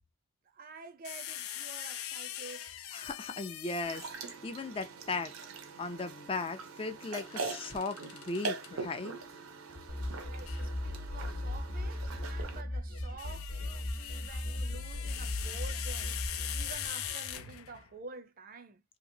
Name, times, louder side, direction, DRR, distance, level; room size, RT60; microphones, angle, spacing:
voice 1, 0.5-2.7 10.3-16.2 16.5-18.8, right 4 dB, 45° right, 0.5 m, -49 dB
sound 1, 1.0-4.4 7.2-8.7 10.5-10.7 12.8-17.9, left 11 dB, 85° left, 0.4 m, -42 dB
voice 2, 2.9-5.3 5.8-9.1, left 3 dB, 25° left, 0.4 m, -37 dB
sound 2, 3.8-12.6, right 4 dB, 80° right, 0.6 m, -42 dB
sound 3, 9.9-17.5, left 1 dB, 65° left, 0.9 m, -37 dB
2.9 x 2.8 x 2.6 m
head